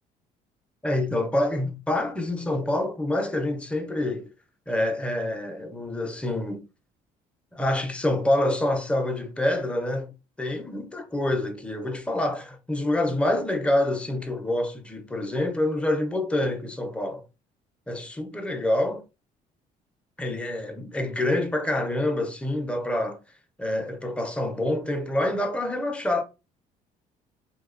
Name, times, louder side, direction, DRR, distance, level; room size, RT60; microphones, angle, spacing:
voice 1, 0.8-4.3 4.7-6.7 7.5-10.1 10.4-17.2 17.9-19.0 20.2-23.2 23.6-26.2, left 1 dB, 10° left, 0.4 m, -26 dB
2.6 x 2.1 x 2.4 m
cardioid pair, 110°, 15 cm